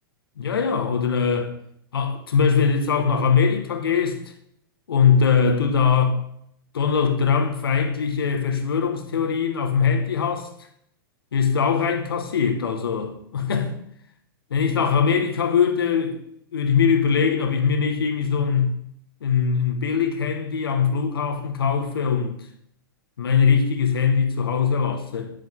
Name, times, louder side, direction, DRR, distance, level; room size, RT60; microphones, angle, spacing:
voice 1, 0.4-1.5 1.9-4.2 4.9-6.2 6.7-10.5 11.3-13.7 14.5-16.2 16.5-18.8 19.2-22.3 23.2-25.3, left 6 dB, 85° left, 1.8 m, -21 dB
11.5 x 7.6 x 3.8 m
hypercardioid pair, 115°, 12 cm